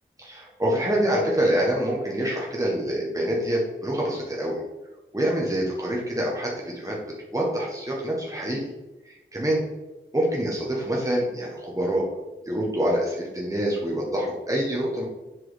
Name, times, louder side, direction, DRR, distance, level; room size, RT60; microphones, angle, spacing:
voice 1, 0.2-4.6 5.1-7.0 7.3-8.6 9.0-9.6 10.1-12.1 12.5-15.1, right 1 dB, 15° right, -3 dB, 1.6 m, -26 dB
7.9 x 4.5 x 4.2 m, 1.1 s
wide cardioid pair, 65°, 20 cm